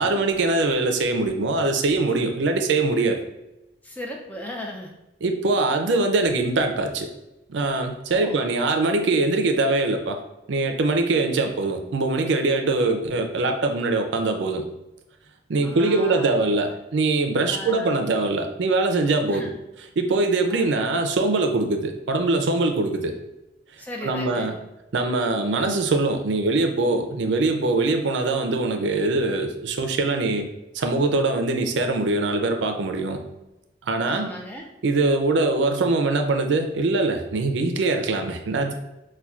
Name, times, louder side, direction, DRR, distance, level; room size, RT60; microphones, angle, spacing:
voice 1, 0.0-3.2 5.2-7.1 7.5-10.2 10.5-14.6 15.5-19.4 20.0-23.1 24.0-24.5 24.9-30.5 30.7-33.2 33.9-34.3 34.8-38.8, right 3 dB, 80° right, 4 dB, 0.4 m, -22 dB
voice 2, 3.8-4.9 8.1-8.5 15.6-16.4 16.7-16.8 17.5-18.0 19.3-19.5 20.5-21.1 23.8-24.6 34.0-34.7, left 1 dB, 10° left, 0 dB, 0.4 m, -37 dB
5.5 x 2.2 x 2.3 m, 0.96 s
head